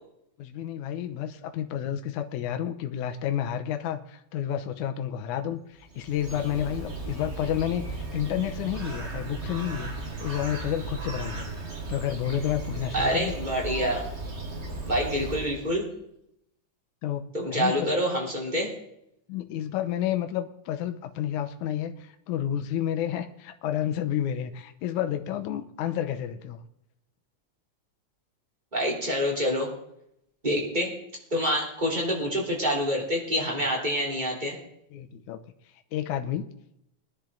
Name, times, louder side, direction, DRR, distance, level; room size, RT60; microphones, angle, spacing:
voice 1, 0.4-9.9 10.2-11.5 11.9-13.3 17.0-18.0 19.3-26.6 34.9-35.4 35.9-36.5, left 10 dB, 80° left, 7 dB, 2.3 m, -30 dB
Bird, 5.8-15.8, right 3 dB, 45° right, 0.9 m, -36 dB
voice 2, 12.9-14.0 14.9-15.9 17.3-18.7 28.7-29.7 30.4-30.9 31.3-34.6, equal, 15° right, -2 dB, 3.4 m, -27 dB
21.5 x 10.5 x 3.9 m, 0.77 s
omnidirectional pair, 3.6 m